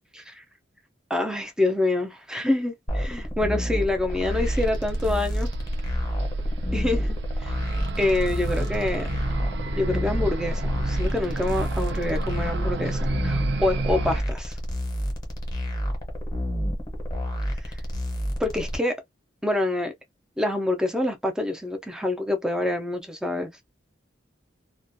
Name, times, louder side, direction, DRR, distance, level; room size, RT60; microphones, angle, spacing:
voice 1, 1.1-5.5 6.7-7.2 7.4-7.6 8.0-9.1 9.8-14.6 17.6-17.7 18.4-19.0 19.4-19.9 20.4-23.5, left 2 dB, 5° right, 0.5 m, -26 dB
sound 1, 2.9-18.8, equal, 20° left, 0.8 m, -29 dB
sound 2, 4.1-14.2, right 2 dB, 60° right, 0.4 m, -30 dB
2.4 x 2.2 x 2.6 m
head